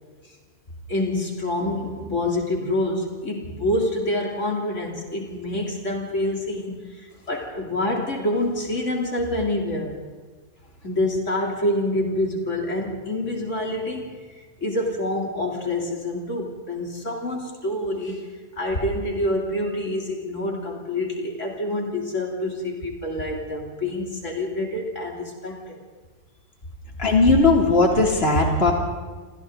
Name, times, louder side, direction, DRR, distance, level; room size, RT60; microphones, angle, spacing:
voice 1, 0.9-10.0 10.8-18.3 18.6-25.8, left 1 dB, 85° left, 0 dB, 3.8 m, -27 dB
voice 2, 27.0-28.7, left 3 dB, 55° left, 0 dB, 3.5 m, -17 dB
30.0 x 26.5 x 4.0 m, 1.4 s
omnidirectional pair, 1.2 m